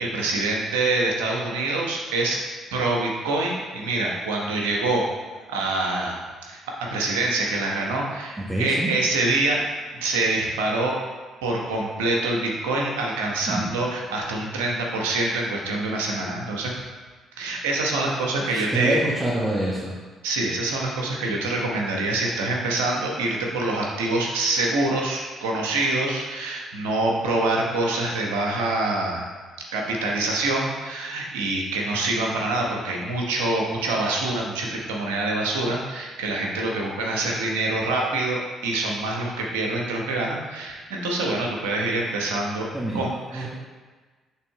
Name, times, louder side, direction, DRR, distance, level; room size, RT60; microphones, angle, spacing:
voice 1, 0.0-2.4 2.7-5.1 5.5-9.6 10.0-10.9 11.4-16.7 17.4-19.0 20.2-29.3 29.7-42.7 42.9-43.5, right 2 dB, 85° right, -1 dB, 0.9 m, -25 dB
voice 2, 8.5-8.9 13.5-13.7 18.5-19.9 42.7-43.5, right 1 dB, 10° right, -7 dB, 1.3 m, -26 dB
5.8 x 3.6 x 4.7 m, 1.4 s
hypercardioid pair, 55°, 0 cm